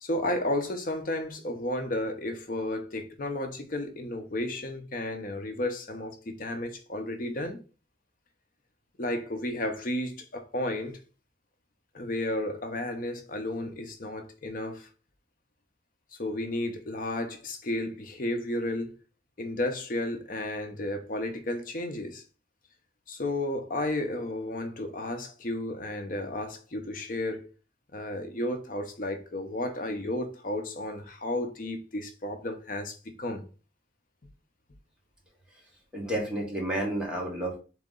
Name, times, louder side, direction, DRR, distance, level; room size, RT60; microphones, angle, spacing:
voice 1, 0.0-7.6 9.0-11.0 11.9-14.9 16.2-18.9 19.4-22.2 23.1-27.5 27.9-33.4, left 1 dB, 50° left, 0.7 m, -33 dB
voice 2, 35.9-37.6, right 1 dB, 5° right, 1.3 m, -31 dB
3.8 x 3.0 x 3.7 m
head